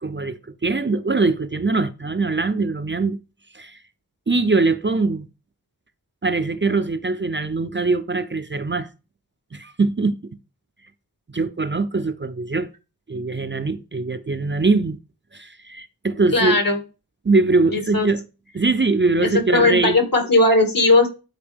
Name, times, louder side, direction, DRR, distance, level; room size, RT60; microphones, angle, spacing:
voice 1, 0.0-3.2 3.5-3.8 4.3-5.3 6.2-8.9 9.5-10.2 11.3-12.7 13.1-15.0 15.3-16.6 17.2-18.2 18.5-20.0, right 3 dB, 30° right, 0.6 m, -22 dB
voice 2, 16.3-16.8 17.7-18.1 19.2-21.1, left 2 dB, 65° left, 2.4 m, -18 dB
12.0 x 4.5 x 3.5 m
wide cardioid pair, 70°, 37 cm